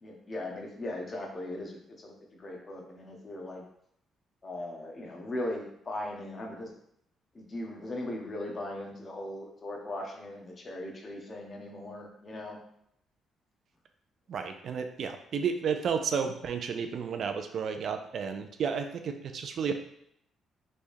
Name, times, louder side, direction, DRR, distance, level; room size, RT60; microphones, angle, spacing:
voice 1, 0.0-3.7 4.4-6.7 7.3-12.6, left 1 dB, 35° left, 1 dB, 0.9 m, -39 dB
voice 2, 14.3-19.7, right 6 dB, 60° right, 6 dB, 0.4 m, -32 dB
3.4 x 3.2 x 2.6 m, 0.72 s
cardioid pair, 90°, 0 cm